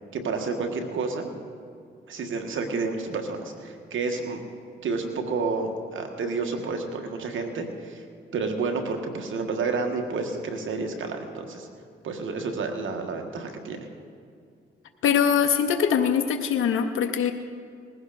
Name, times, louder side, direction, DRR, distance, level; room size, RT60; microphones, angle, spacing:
voice 1, 0.1-1.3 2.1-4.4 4.8-8.0 8.3-11.7 12.0-13.9, right 4 dB, 70° right, 4 dB, 1.6 m, -30 dB
voice 2, 15.0-17.3, left 7 dB, 75° left, 7 dB, 0.8 m, -22 dB
20.0 x 16.0 x 2.6 m, 2.3 s
supercardioid pair, 50°, 21 cm